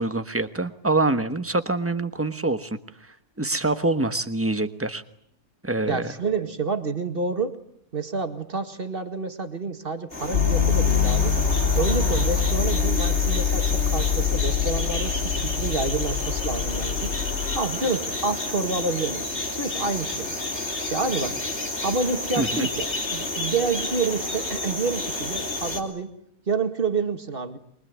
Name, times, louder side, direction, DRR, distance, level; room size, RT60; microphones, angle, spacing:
voice 1, 0.0-2.8 3.4-5.0 5.6-6.1 22.4-22.7, right 2 dB, 10° right, 9 dB, 1.1 m, -25 dB
voice 2, 5.9-7.6 7.9-11.3 11.7-17.1 17.5-19.3 19.6-20.3 20.9-21.4 21.8-22.9 23.1-26.1 26.5-27.6, right 4 dB, 35° right, 8 dB, 2.0 m, -28 dB
sound 1, 10.1-25.8, left 2 dB, 45° left, 3.8 m, -30 dB
sound 2, 10.3-17.6, left 7 dB, 65° left, 4.4 m, -24 dB
24.5 x 22.5 x 9.5 m, 0.73 s
omnidirectional pair, 1.7 m